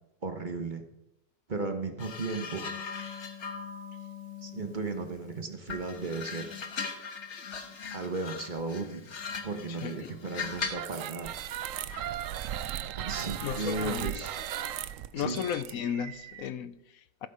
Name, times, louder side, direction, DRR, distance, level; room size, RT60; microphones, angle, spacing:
voice 1, 0.2-0.8 1.5-2.7 4.4-6.5 7.9-9.1 9.4-11.3 12.9-14.4 15.1-15.4, right 3 dB, 35° right, 0.9 m, -35 dB
sound 1, 2.0-5.2 5.7-10.9 11.9-12.1, left 5 dB, 45° left, 1.3 m, -39 dB
voice 2, 9.7-10.1 13.4-14.1 14.6-14.8 15.1-17.3, left 9 dB, 65° left, 0.9 m, -35 dB
sound 2, 10.6-16.5, right 11 dB, 70° right, 0.7 m, -37 dB
14.0 x 8.2 x 5.5 m
omnidirectional pair, 1.9 m